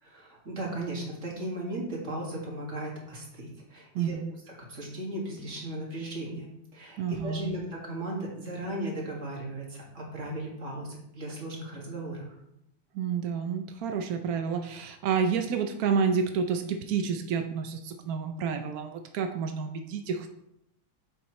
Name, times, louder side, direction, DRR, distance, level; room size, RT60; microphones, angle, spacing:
voice 1, 0.0-4.4 4.7-12.4, right 1 dB, 35° right, -2 dB, 2.3 m, -36 dB
voice 2, 3.9-4.3 7.0-7.5 12.9-20.3, right 6 dB, 75° right, 5 dB, 0.8 m, -29 dB
8.8 x 7.1 x 3.2 m, 0.79 s
omnidirectional pair, 2.3 m